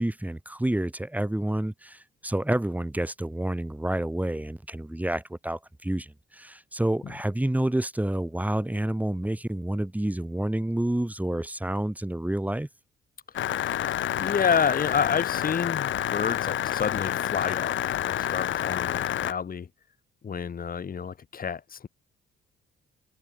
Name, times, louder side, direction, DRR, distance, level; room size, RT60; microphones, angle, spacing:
voice 1, 0.0-12.7, right 1 dB, 10° right, 6.0 m, -29 dB
sound 1, 13.3-19.3, left 12 dB, 70° left, 2.3 m, -28 dB
voice 2, 14.2-17.8 18.1-19.7 20.2-21.9, left 6 dB, 45° left, 6.3 m, -29 dB
cardioid pair, 90°, 20 cm